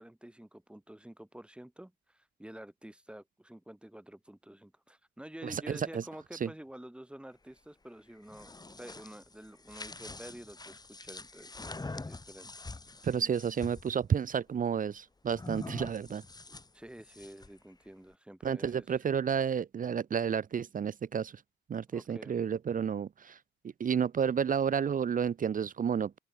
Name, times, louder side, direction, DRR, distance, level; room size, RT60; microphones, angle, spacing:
voice 1, 0.0-12.7 16.7-18.8 21.9-22.4, right 1 dB, 5° right, 6.9 m, -49 dB
voice 2, 5.4-6.1 6.4-6.5 13.0-16.2 18.4-21.4 21.7-23.4 23.6-26.2, right 7 dB, 45° right, 1.0 m, -31 dB
sound 1, 8.1-13.9 15.3-17.6, left 3 dB, 20° left, 3.8 m, -45 dB
open air
cardioid pair, 90°, 20 cm